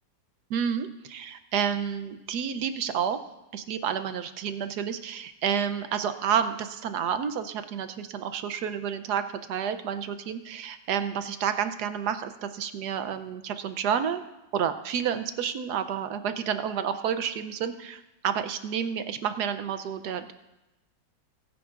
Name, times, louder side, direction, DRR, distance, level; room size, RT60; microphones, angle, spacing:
voice 1, 0.5-3.2 3.5-9.2 9.5-14.2 14.5-20.3, right 8 dB, 70° right, 10 dB, 1.1 m, -30 dB
22.0 x 10.0 x 2.5 m, 0.97 s
omnidirectional pair, 2.0 m